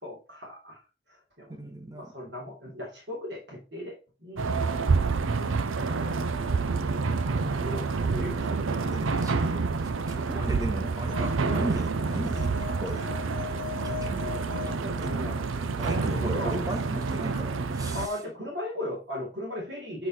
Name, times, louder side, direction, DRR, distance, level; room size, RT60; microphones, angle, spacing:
voice 1, 0.0-0.8 1.1-4.4 7.2-8.5 10.3-10.7 14.2-14.4 15.0-15.4 15.9-16.5 17.9-20.1, left 1 dB, 60° right, -3 dB, 3.1 m, -38 dB
voice 2, 1.5-2.1 8.8-12.5 12.8-13.0 13.8-14.2 14.7-15.4 15.8-18.2, right 1 dB, 20° right, 4 dB, 1.2 m, -37 dB
sound 1, 4.4-18.1, right 4 dB, 85° right, 0.6 m, -28 dB
sound 2, 10.8-15.6, left 12 dB, 70° left, 0.5 m, -40 dB
8.2 x 4.0 x 4.3 m, 0.32 s
head